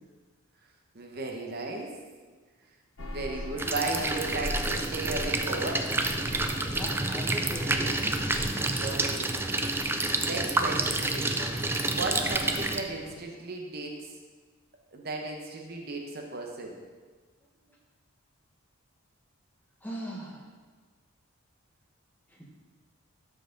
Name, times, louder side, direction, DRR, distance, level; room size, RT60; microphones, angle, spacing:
voice 1, 0.9-1.9 3.0-5.9 8.8-9.3 10.2-11.4 11.9-13.9 14.9-16.8, right 2 dB, 45° right, 1 dB, 0.9 m, -35 dB
sound 1, 3.0-13.2, left 1 dB, 70° left, 0.8 m, -42 dB
sound 2, 3.6-12.8, right 2 dB, 10° right, 0.3 m, -29 dB
voice 2, 6.3-8.1 19.8-20.5 22.3-22.5, equal, 10° left, -3 dB, 1.2 m, -40 dB
12.0 x 4.8 x 3.9 m, 1.4 s
head